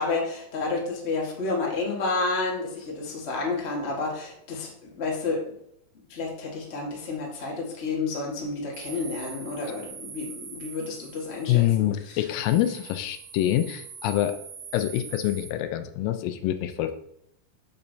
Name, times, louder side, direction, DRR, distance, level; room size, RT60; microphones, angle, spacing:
voice 1, 0.0-5.4 6.1-12.2, left 3 dB, 60° left, -2 dB, 0.6 m, -30 dB
sound 1, 8.7-15.5, right 6 dB, 80° right, 2.6 m, -43 dB
voice 2, 11.5-14.4 14.7-16.9, left 13 dB, 85° left, 9 dB, 2.3 m, -25 dB
7.2 x 6.6 x 2.7 m, 0.75 s
omnidirectional pair, 4.0 m